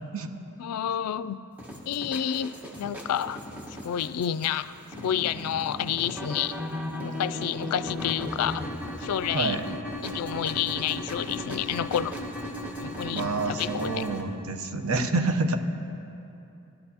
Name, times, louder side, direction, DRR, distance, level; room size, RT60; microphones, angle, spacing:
voice 1, 0.6-1.4 1.9-3.4 3.8-6.6 7.0-8.6 9.0-9.6 10.0-12.1 12.8-14.1, left 9 dB, 90° left, 15 dB, 0.3 m, -29 dB
sound 1, 1.6-14.2, equal, 10° right, 1.2 m, -36 dB
voice 2, 9.3-9.7 13.1-15.6, right 3 dB, 70° right, 6 dB, 0.8 m, -28 dB
20.5 x 12.0 x 2.8 m, 2.8 s
head